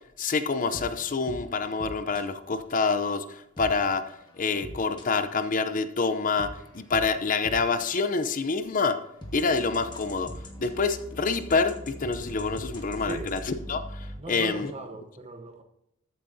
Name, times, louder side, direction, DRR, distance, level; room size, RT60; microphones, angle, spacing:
voice 1, 0.2-3.2 3.6-4.0 4.4-9.0 9.3-10.3 10.6-13.4 13.7-13.8 14.3-14.7, left 4 dB, 40° left, 10 dB, 0.6 m, -26 dB
sound 1, 0.7-2.2 3.6-5.4 6.4-7.9 8.5-14.2, equal, 20° left, 1.5 m, -42 dB
voice 2, 13.0-13.3 14.2-15.6, right 2 dB, 30° right, 5 dB, 1.0 m, -38 dB
13.5 x 8.6 x 2.7 m, 0.79 s
head